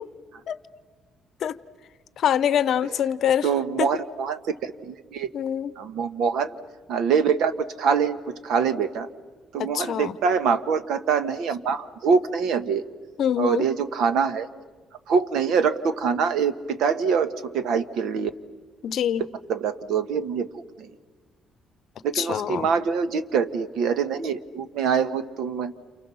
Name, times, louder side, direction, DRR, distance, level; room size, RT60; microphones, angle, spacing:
voice 1, 2.2-3.5 3.8-3.9 5.3-5.7 9.6-10.1 13.2-13.6 18.8-19.2 22.2-22.7, left 9 dB, 55° left, 16 dB, 0.8 m, -24 dB
voice 2, 3.4-5.3 5.8-6.6 6.9-9.1 9.5-12.8 13.4-14.5 15.1-18.3 19.5-20.9 22.0-25.7, right 6 dB, 70° right, 12 dB, 1.3 m, -24 dB
29.0 x 28.5 x 7.0 m, 1.4 s
cardioid pair, 160°, 0 cm